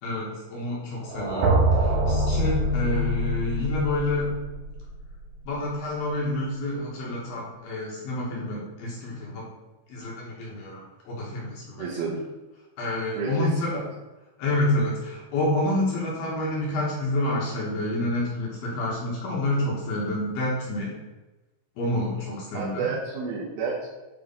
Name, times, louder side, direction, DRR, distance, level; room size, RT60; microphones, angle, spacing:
voice 1, 0.0-4.4 5.5-9.4 9.9-12.1 12.8-13.9 14.4-20.9 21.8-22.9, left 1 dB, 65° left, -4 dB, 2.6 m, -28 dB
sound 1, 1.1-5.1, right 1 dB, 70° right, 3.0 m, -24 dB
voice 2, 11.8-12.2 13.2-13.8 22.5-23.9, right 5 dB, 85° right, -6 dB, 3.7 m, -30 dB
9.3 x 3.1 x 5.4 m, 1.1 s
omnidirectional pair, 5.6 m